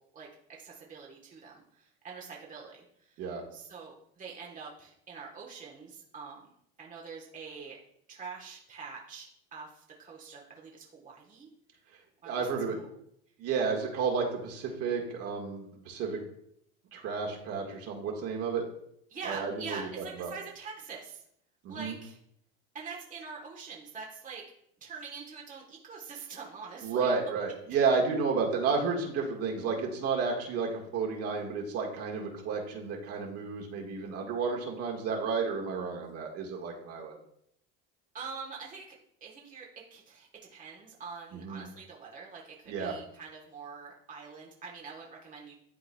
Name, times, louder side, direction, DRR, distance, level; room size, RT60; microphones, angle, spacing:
voice 1, 0.0-6.5 6.8-7.8 8.1-9.3 9.5-11.5 12.2-13.0 19.1-21.2 21.7-22.2 22.7-24.4 24.8-27.1 38.1-38.8 39.2-45.6, right 5 dB, 25° right, -2 dB, 1.1 m, -45 dB
voice 2, 12.2-12.8 13.4-16.2 16.9-18.6 19.2-20.3 21.6-22.0 26.8-37.1 41.3-41.6 42.7-43.0, right 5 dB, 55° right, 0 dB, 1.6 m, -31 dB
11.0 x 3.7 x 2.3 m, 0.72 s
supercardioid pair, 105°, 30 cm